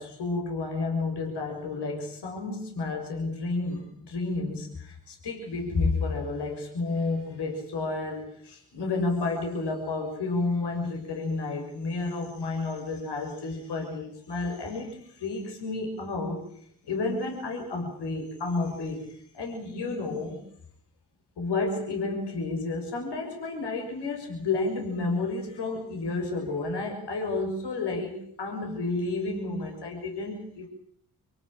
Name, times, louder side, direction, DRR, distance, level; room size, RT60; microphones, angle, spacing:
voice 1, 0.0-20.4 21.4-30.7, left 3 dB, 80° left, 2 dB, 6.8 m, -31 dB
27.0 x 18.0 x 9.0 m, 0.66 s
cardioid pair, 50°, 40 cm